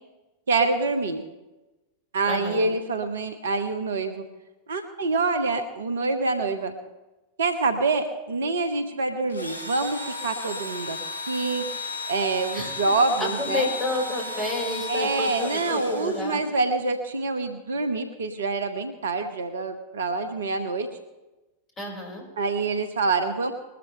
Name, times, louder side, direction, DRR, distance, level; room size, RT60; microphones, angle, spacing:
voice 1, 0.5-1.2 2.1-4.2 4.7-6.7 7.4-11.0 11.3-11.6 12.1-13.7 14.9-20.9 22.4-23.5, right 3 dB, 65° right, 9 dB, 1.2 m, -26 dB
voice 2, 2.2-2.7 12.5-12.9 13.2-16.4 21.8-22.2, left 2 dB, 20° left, -1 dB, 5.6 m, -30 dB
Engine / Drill, 9.3-16.6, left 2 dB, 70° left, 4.8 m, -34 dB
21.0 x 13.0 x 3.4 m, 1.1 s
figure-of-eight pair, 90°, 0 cm